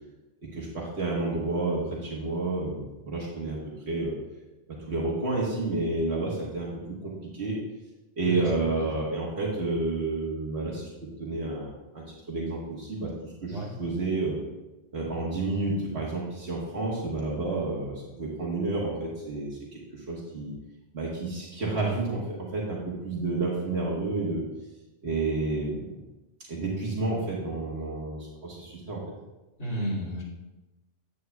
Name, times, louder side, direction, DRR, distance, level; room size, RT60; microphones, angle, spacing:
voice 1, 0.4-3.6 3.9-4.1 4.9-6.7 7.0-7.6 8.2-10.9 11.2-14.4 14.9-20.5 20.9-24.4 25.0-25.9 26.5-29.0, right 2 dB, 60° right, -4 dB, 1.6 m, -30 dB
voice 2, 29.6-30.2, right 1 dB, 80° left, -8 dB, 3.1 m, -32 dB
9.3 x 8.3 x 2.3 m, 1.0 s
omnidirectional pair, 1.2 m